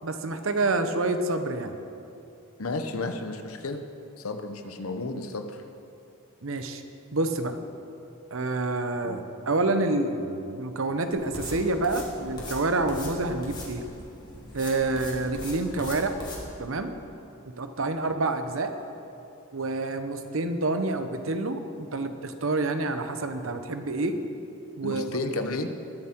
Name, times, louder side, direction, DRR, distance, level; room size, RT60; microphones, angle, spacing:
voice 1, 0.0-1.8 6.4-6.8 7.1-7.6 8.3-13.8 14.5-16.1 16.6-16.9 17.6-18.7 19.5-24.2 24.8-25.0, right 2 dB, 70° right, 8 dB, 0.9 m, -28 dB
voice 2, 2.6-3.9 4.2-5.6 9.0-9.2 24.8-25.7, left 2 dB, 90° left, 7 dB, 0.9 m, -32 dB
sound 1, 11.1-16.4, left 1 dB, 20° left, 2.4 m, -41 dB
21.0 x 7.4 x 4.5 m, 2.7 s
head